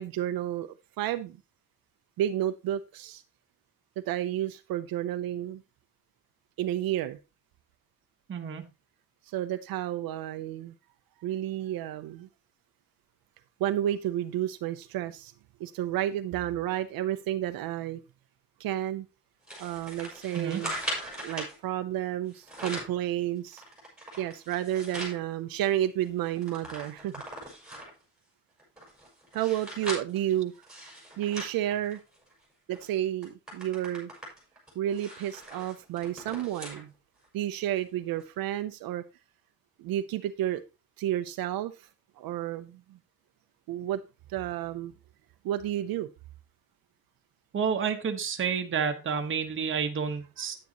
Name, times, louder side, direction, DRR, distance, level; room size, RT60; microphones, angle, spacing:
voice 1, 0.0-1.4 2.2-3.2 4.1-5.6 6.6-7.2 9.3-10.7 11.2-12.3 13.6-15.3 15.6-18.0 18.6-19.1 19.6-20.7 21.2-23.6 24.2-27.1 29.3-30.5 31.2-32.0 32.7-34.1 34.8-36.9 37.3-39.0 39.8-40.6 41.0-41.9 42.2-42.8 43.7-44.0 44.3-44.9 45.4-46.1, right 12 dB, 80° right, 10 dB, 0.7 m, -31 dB
voice 2, 8.3-8.7 20.3-20.6 47.5-50.6, right 6 dB, 35° right, 4 dB, 1.4 m, -30 dB
sound 1, 19.5-21.5 22.3-23.0 23.5-25.2 25.6-25.7 26.0-28.0 28.6-32.3 32.7-32.9 33.2-36.8 37.2-37.3 38.2-38.3, right 1 dB, ahead, 5.8 m, -40 dB
9.6 x 9.4 x 3.0 m, 0.27 s
cardioid pair, 155°, 35 cm